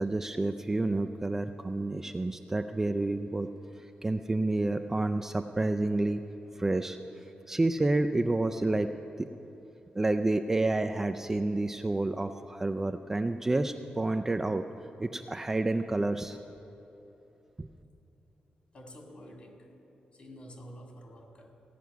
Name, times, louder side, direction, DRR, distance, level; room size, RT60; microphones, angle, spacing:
voice 1, 0.0-3.5 3.8-6.2 6.6-8.9 9.2-9.3 9.9-14.6 15.0-16.4 17.6-17.7, right 2 dB, 15° right, 7 dB, 0.3 m, -29 dB
voice 2, 18.7-19.8 20.1-21.6, equal, 40° left, 1 dB, 1.9 m, -49 dB
16.0 x 5.9 x 9.3 m, 3.0 s
wide cardioid pair, 170°, 3 cm